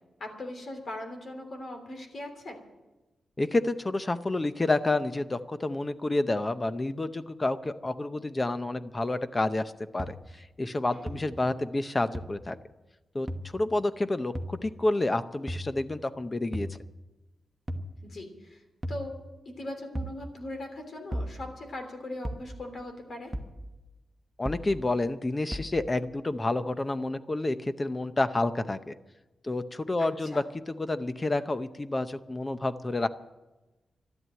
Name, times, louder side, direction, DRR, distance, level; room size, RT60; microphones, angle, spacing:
voice 1, 0.2-2.6 10.9-11.3 18.0-18.6 18.9-19.1 19.4-23.3 30.0-30.4, left 1 dB, 50° left, 4 dB, 3.1 m, -40 dB
voice 2, 3.4-12.6 13.1-13.3 13.5-16.8 24.4-28.9 29.4-33.1, left 2 dB, 20° left, 11 dB, 0.7 m, -29 dB
sound 1, 10.0-10.1 11.1-11.2 12.1-12.2 13.3-13.4 14.3-14.5 15.5-15.7 16.5-16.7 17.7-17.9 18.8-19.0 19.9-20.2 21.1-21.3 22.2-22.5 23.3-23.6 24.5-24.7 25.5-25.7, equal, 15° right, 1.1 m, -34 dB
12.5 x 11.0 x 8.9 m, 1.1 s
wide cardioid pair, 150°, 0 cm